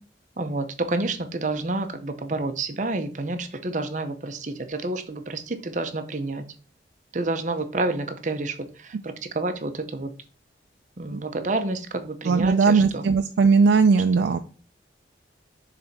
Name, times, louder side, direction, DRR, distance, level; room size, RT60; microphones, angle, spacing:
voice 1, 0.4-6.4 7.1-10.1 11.0-13.0 14.2-14.4, right 2 dB, 40° right, 0.7 m, -29 dB
voice 2, 12.3-14.4, right 4 dB, 70° right, 0.4 m, -19 dB
6.7 x 3.4 x 4.1 m
head